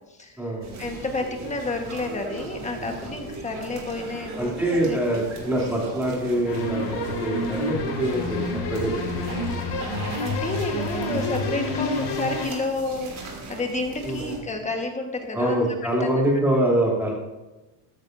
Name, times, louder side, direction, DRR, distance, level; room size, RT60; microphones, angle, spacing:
voice 1, 0.1-5.2 10.2-15.7 16.0-16.1, left 2 dB, 15° left, 3 dB, 1.4 m, -30 dB
sound 1, 0.6-14.4, right 3 dB, 35° right, 2.8 m, -38 dB
voice 2, 4.4-8.9 9.2-9.4 14.0-14.3 15.3-17.1, right 1 dB, 5° right, -4 dB, 3.0 m, -24 dB
sound 2, 6.5-12.5, left 2 dB, 65° left, 4.0 m, -28 dB
13.5 x 13.0 x 2.7 m, 1.1 s
cardioid pair, 150°, 49 cm